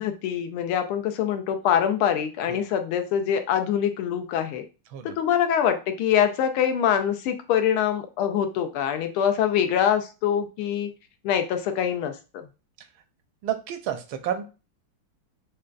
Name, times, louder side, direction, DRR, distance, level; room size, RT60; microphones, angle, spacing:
voice 1, 0.0-4.6 5.0-10.9 11.2-12.1, left 9 dB, 90° left, 7 dB, 1.5 m, -24 dB
voice 2, 13.4-14.4, right 10 dB, 80° right, 8 dB, 1.3 m, -30 dB
6.4 x 2.2 x 2.4 m, 0.31 s
omnidirectional pair, 2.3 m